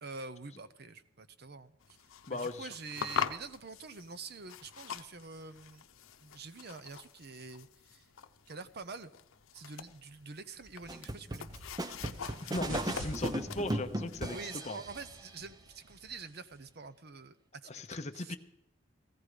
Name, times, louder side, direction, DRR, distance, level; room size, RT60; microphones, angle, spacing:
voice 1, 0.0-5.9 6.2-8.1 8.5-9.1 9.5-11.5 14.3-18.4, right 4 dB, 50° right, 14 dB, 0.8 m, -46 dB
sound 1, 1.8-14.4, left 7 dB, 85° left, 0.7 m, -44 dB
voice 2, 2.3-2.7 12.4-14.4 14.7-14.8 17.7-18.4, left 2 dB, 35° left, 7 dB, 0.8 m, -37 dB
sound 2, 10.6-16.7, equal, 85° right, 2.7 m, -48 dB
sound 3, 10.9-15.2, right 1 dB, 20° right, 0.6 m, -37 dB
16.0 x 15.0 x 5.0 m, 0.80 s
head